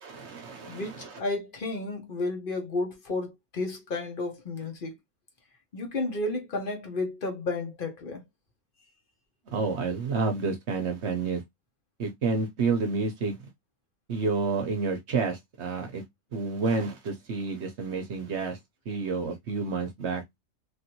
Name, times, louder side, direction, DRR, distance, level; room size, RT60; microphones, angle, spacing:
voice 1, 0.0-1.2 9.5-11.4 12.0-13.4 14.1-16.0 16.3-18.6 18.9-20.2, right 4 dB, 55° right, 0.9 m, -29 dB
voice 2, 0.7-4.9 5.7-8.2, left 2 dB, 45° left, 1.0 m, -32 dB
3.2 x 2.6 x 2.8 m
omnidirectional pair, 1.5 m